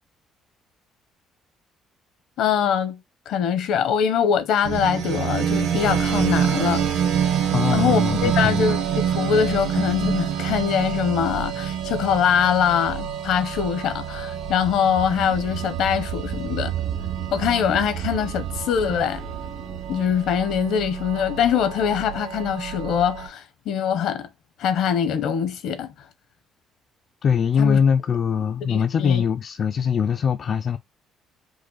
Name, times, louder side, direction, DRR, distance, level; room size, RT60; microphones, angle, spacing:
voice 1, 2.4-3.0 3.3-6.8 7.7-16.7 17.3-19.2 19.9-24.3 24.6-25.9 27.6-27.8 28.7-29.2, left 8 dB, 70° left, 0.9 m, -23 dB
sound 1, 4.6-23.3, right 8 dB, 80° right, 1.2 m, -27 dB
voice 2, 7.5-8.7 27.2-30.8, left 7 dB, 40° left, 0.3 m, -22 dB
sound 2, 13.0-21.8, right 11 dB, 55° right, 0.9 m, -34 dB
5.1 x 2.1 x 4.0 m
cardioid pair, 155°, 0 cm